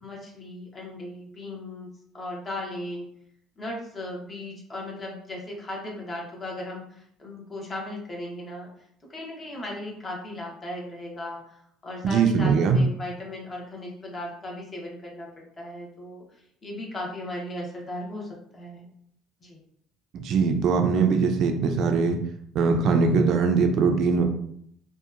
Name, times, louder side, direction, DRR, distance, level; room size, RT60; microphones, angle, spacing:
voice 1, 0.0-1.9 2.1-3.1 3.6-8.7 9.1-11.6 11.8-18.9 19.4-19.6, left 1 dB, 30° left, -2 dB, 0.8 m, -37 dB
voice 2, 12.0-12.8 20.1-22.2 22.5-24.2, right 5 dB, 60° right, 5 dB, 0.3 m, -21 dB
2.7 x 2.2 x 2.4 m, 0.68 s
cardioid pair, 120°, 0 cm